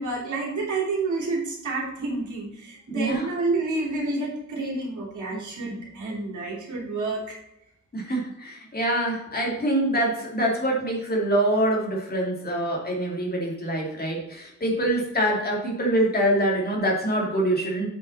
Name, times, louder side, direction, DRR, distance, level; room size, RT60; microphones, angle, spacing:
voice 1, 0.0-7.4, right 3 dB, 90° right, -2 dB, 3.1 m, -29 dB
voice 2, 2.9-3.3 7.9-17.9, right 1 dB, 30° left, -2 dB, 2.4 m, -25 dB
8.3 x 5.7 x 4.1 m, 0.84 s
wide cardioid pair, 150°, 29 cm